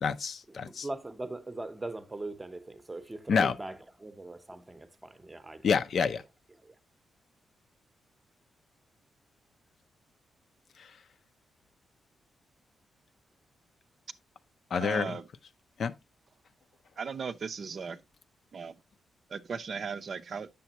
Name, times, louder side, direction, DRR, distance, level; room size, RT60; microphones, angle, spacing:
voice 1, 0.0-0.9 3.3-3.5 5.6-6.2 14.7-15.1 15.8-15.9, left 6 dB, 55° left, 0.5 m, -27 dB
voice 2, 0.7-5.7 6.6-6.7, right 2 dB, 15° right, 0.8 m, -40 dB
voice 3, 14.8-15.3 17.0-18.0 18.5-18.8 19.3-20.5, right 5 dB, 45° right, 0.5 m, -37 dB
8.9 x 6.9 x 2.9 m
wide cardioid pair, 145°, 0 cm